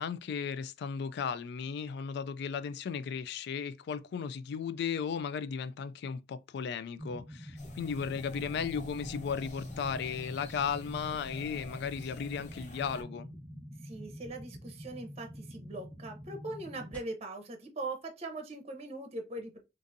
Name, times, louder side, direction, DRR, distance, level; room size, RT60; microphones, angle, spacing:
voice 1, 0.0-13.3, left 6 dB, 65° left, 0.3 m, -35 dB
sound 1, 7.0-17.0, equal, 10° left, 1.0 m, -47 dB
sound 2, 7.6-13.0, left 2 dB, 45° left, 0.8 m, -47 dB
voice 2, 13.8-19.6, right 2 dB, 35° right, 0.7 m, -41 dB
3.8 x 2.5 x 2.6 m
head